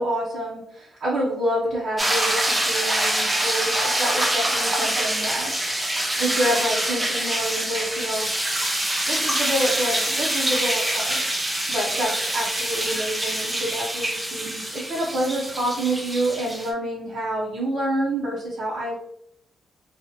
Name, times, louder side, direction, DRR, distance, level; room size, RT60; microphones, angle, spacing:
voice 1, 0.0-5.6 6.2-8.3 9.1-11.2 11.7-18.9, right 1 dB, 65° right, -6 dB, 0.7 m, -27 dB
sound 1, 2.0-16.7, right 1 dB, 10° right, 0.4 m, -25 dB
2.7 x 2.4 x 2.8 m, 0.73 s
wide cardioid pair, 150°, 0 cm